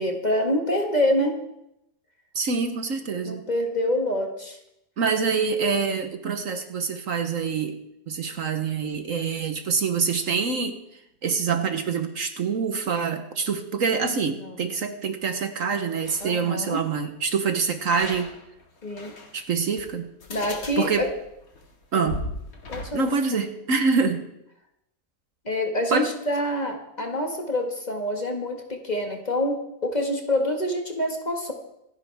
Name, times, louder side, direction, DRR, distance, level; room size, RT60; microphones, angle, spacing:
voice 1, 0.0-1.4 3.2-4.6 14.4-14.6 16.2-16.8 18.8-19.1 20.3-21.1 21.9-22.1 22.7-23.1 25.5-31.5, left 1 dB, 30° left, 2 dB, 1.8 m, -26 dB
voice 2, 2.3-3.5 5.0-7.8 8.1-18.3 19.3-20.1 20.8-21.0 21.9-22.2 22.9-24.3 25.9-26.1, right 5 dB, 60° right, 7 dB, 1.3 m, -26 dB
sound 1, 16.1-16.3 17.9-19.3 19.8-19.9 20.2-22.9, left 2 dB, 65° left, 2.4 m, -37 dB
26.5 x 10.0 x 3.5 m, 0.83 s
omnidirectional pair, 1.6 m